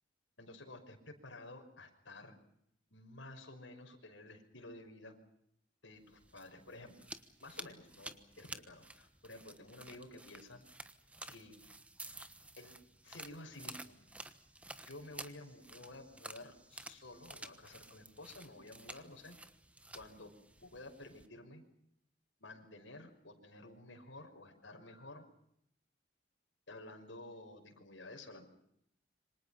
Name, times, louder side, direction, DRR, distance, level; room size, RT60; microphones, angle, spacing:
voice 1, 0.4-2.4 2.9-5.2 5.8-6.9 7.4-10.6 11.3-11.5 12.6-12.7 13.0-14.0 14.9-19.4 19.9-20.3 20.6-21.6 22.4-25.3 26.7-28.4, left 2 dB, 75° left, 4 dB, 5.7 m, -52 dB
sound 1, 6.1-21.3, right 2 dB, 5° right, 1.2 m, -52 dB
27.5 x 25.5 x 5.7 m, 0.75 s
head